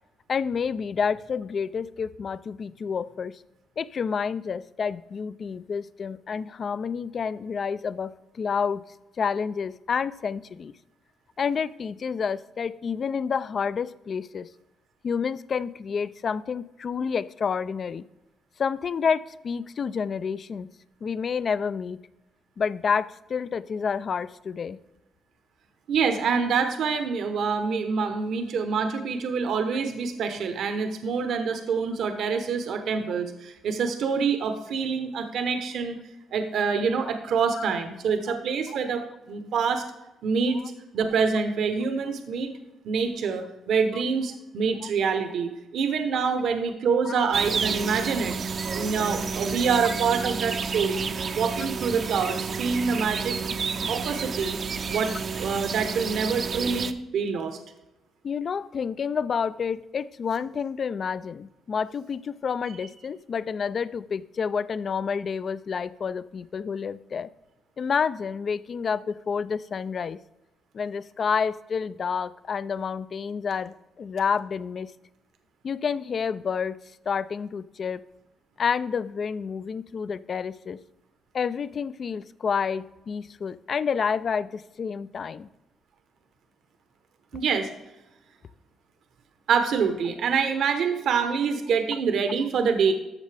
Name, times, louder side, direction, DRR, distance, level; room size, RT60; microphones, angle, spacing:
voice 1, 0.3-3.4 3.8-8.8 9.2-10.7 11.4-14.5 15.0-18.0 18.6-20.7 21.0-22.0 22.6-24.8 37.6-37.7 38.3-38.4 40.5-40.7 44.8-44.9 47.0-47.2 53.7-53.9 58.2-67.3 67.8-70.2 70.7-74.9 75.6-76.8 77.1-78.0 78.6-80.8 81.3-85.5, left 6 dB, 50° left, 17 dB, 0.4 m, -29 dB
voice 2, 25.9-36.0 36.3-39.8 40.2-40.6 40.9-42.5 42.8-48.4 48.7-51.1 51.3-53.4 53.9-54.6 54.9-55.1 55.4-57.6 87.3-87.7 89.5-92.9, right 5 dB, 70° right, 7 dB, 0.9 m, -26 dB
sound 1, 47.3-56.9, right 5 dB, 45° right, 0.6 m, -30 dB
13.5 x 6.5 x 3.4 m, 0.99 s
cardioid pair, 90°, 0 cm